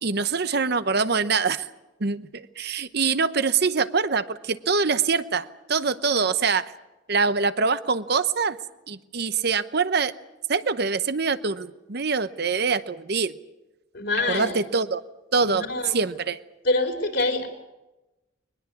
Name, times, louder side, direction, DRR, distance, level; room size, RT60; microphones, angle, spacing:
voice 1, 0.0-1.6 2.0-6.7 7.1-8.6 8.9-10.1 10.5-13.3 14.3-15.0 15.3-16.4, right 5 dB, 55° right, 13 dB, 0.9 m, -24 dB
voice 2, 13.9-14.5 15.4-16.0 16.6-17.5, left 2 dB, 60° left, 4 dB, 4.0 m, -25 dB
22.0 x 20.5 x 8.5 m, 1.0 s
head